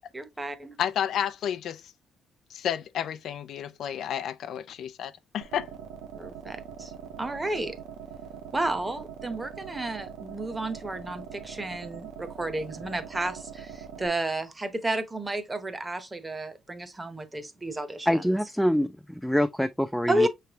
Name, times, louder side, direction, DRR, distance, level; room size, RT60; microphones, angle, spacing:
voice 1, 0.1-0.8 6.1-6.9 7.2-7.8 8.5-18.4 20.1-20.3, right 1 dB, 20° right, 0.9 m, -32 dB
voice 2, 0.8-1.8 2.5-5.7, left 9 dB, 75° left, 0.4 m, -31 dB
sound 1, 5.4-14.1, right 7 dB, 85° right, 0.6 m, -42 dB
voice 3, 18.1-20.3, equal, ahead, 0.4 m, -25 dB
5.7 x 3.3 x 2.9 m
cardioid pair, 90°, 0 cm